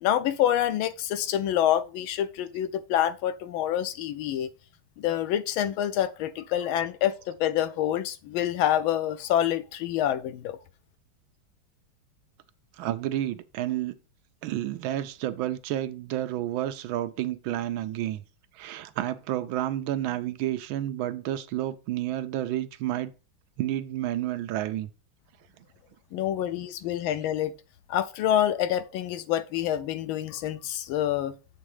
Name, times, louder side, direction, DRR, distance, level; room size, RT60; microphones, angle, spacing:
voice 1, 0.0-4.5 5.0-10.6 26.1-27.5 27.9-31.3, left 11 dB, 85° left, 1.4 m, -27 dB
voice 2, 12.8-14.0 14.4-18.2 18.6-23.1 23.6-24.9, right 13 dB, 80° right, 1.4 m, -30 dB
7.5 x 3.6 x 4.8 m
omnidirectional pair, 2.2 m